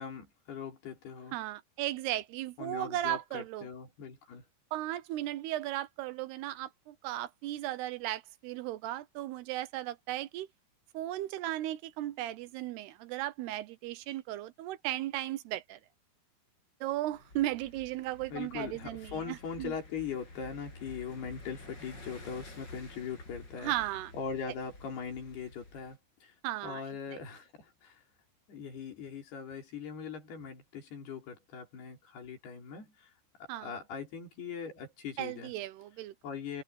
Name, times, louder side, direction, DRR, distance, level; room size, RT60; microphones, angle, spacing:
voice 1, 0.0-1.3 2.6-4.4 18.3-23.7 24.1-26.3 26.6-28.0 28.5-33.1 33.6-35.5 36.2-36.6, left 6 dB, 65° left, 6.2 m, -41 dB
voice 2, 1.3-3.7 4.7-10.5 10.9-15.8 16.8-19.7 23.6-24.1 26.4-26.8 33.5-33.7 35.2-36.1, right 14 dB, 80° right, 2.7 m, -36 dB
sound 1, 17.1-26.0, left 2 dB, 25° left, 7.9 m, -50 dB
omnidirectional pair, 4.9 m